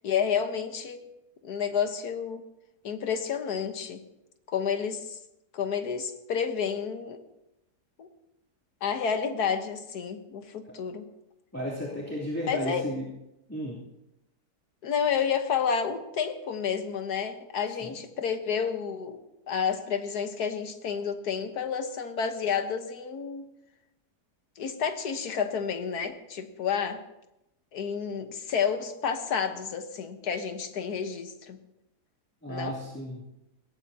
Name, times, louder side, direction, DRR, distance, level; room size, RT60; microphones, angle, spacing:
voice 1, 0.0-1.0 1.4-2.4 2.8-4.0 4.5-5.2 5.5-7.2 8.0-8.1 8.8-11.0 12.5-12.8 14.8-19.2 19.5-23.5 24.6-27.0 27.7-31.6 32.5-32.8, left 7 dB, 70° left, 7 dB, 1.7 m, -30 dB
voice 2, 11.5-13.1 13.5-13.8 17.8-17.9 32.4-33.2, equal, 10° left, -7 dB, 2.8 m, -33 dB
21.5 x 17.5 x 2.8 m, 0.90 s
omnidirectional pair, 1.8 m